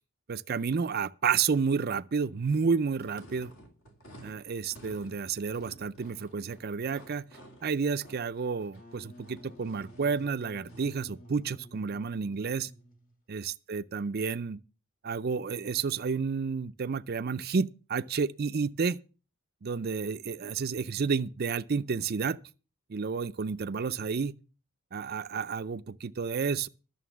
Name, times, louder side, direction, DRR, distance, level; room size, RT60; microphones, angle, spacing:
voice 1, 0.3-3.5 4.2-7.2 7.6-12.7 13.3-14.6 15.0-19.0 19.6-22.4 22.9-24.3 24.9-26.7, right 5 dB, 45° right, 0.5 m, -30 dB
sound 1, 2.9-11.0, equal, 60° left, 2.5 m, -53 dB
Wind instrument woodwind instrument, 8.6-13.2, right 1 dB, 40° left, 1.6 m, -52 dB
11.0 x 6.9 x 7.0 m
head